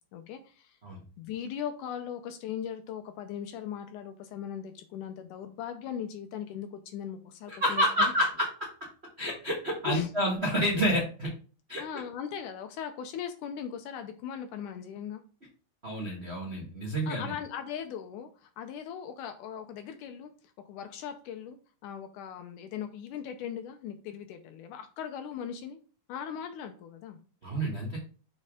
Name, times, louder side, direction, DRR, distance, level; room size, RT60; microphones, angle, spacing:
voice 1, 0.1-0.8 1.2-7.9 9.9-10.1 11.8-15.2 17.0-20.3 20.7-21.6 21.8-25.8 26.1-27.2, left 8 dB, 80° left, 7 dB, 2.1 m, -39 dB
voice 2, 7.5-8.5 9.2-11.3 11.7-12.0 15.8-17.3 27.4-28.0, equal, 65° right, -4 dB, 0.6 m, -29 dB
6.6 x 4.4 x 3.6 m, 0.39 s
omnidirectional pair, 3.8 m